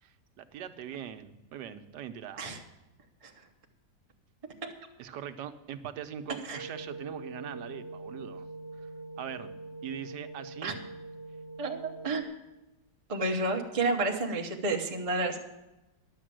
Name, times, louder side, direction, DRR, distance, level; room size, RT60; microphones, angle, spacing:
voice 1, 0.0-2.5 5.0-8.4 8.8-8.9 9.2-9.5 9.8-10.8, right 9 dB, 85° right, 9 dB, 1.4 m, -41 dB
sound 1, 6.5-12.2, right 2 dB, 40° right, 1.4 m, -44 dB
voice 2, 11.6-12.3 13.1-15.4, right 2 dB, 25° right, 1 dB, 0.8 m, -30 dB
11.0 x 7.3 x 7.6 m, 1.0 s
omnidirectional pair, 1.8 m